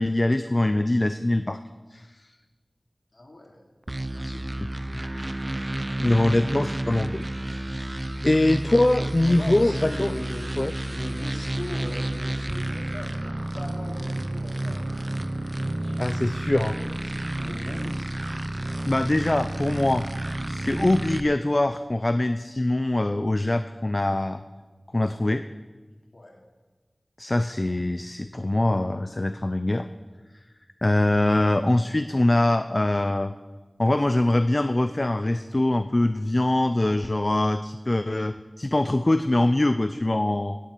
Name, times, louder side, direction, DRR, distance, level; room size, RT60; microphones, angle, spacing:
voice 1, 0.0-1.6 1.9-2.3 6.0-7.9 8.2-10.1 10.6-10.7 16.0-16.8 18.9-20.1 20.5-24.4 24.9-25.4 27.2-29.9 30.8-33.3 33.8-40.6, left 1 dB, 40° left, 10 dB, 0.5 m, -23 dB
voice 2, 3.1-3.6 4.1-4.7 6.0-6.3 9.3-10.5 10.8-14.9 15.8-16.0 16.5-18.2 26.1-26.4, left 1 dB, 60° left, 0 dB, 2.9 m, -40 dB
sound 1, 3.9-21.2, right 1 dB, 35° right, 0.7 m, -30 dB
18.0 x 7.6 x 8.4 m, 1.3 s
wide cardioid pair, 55°, 0 cm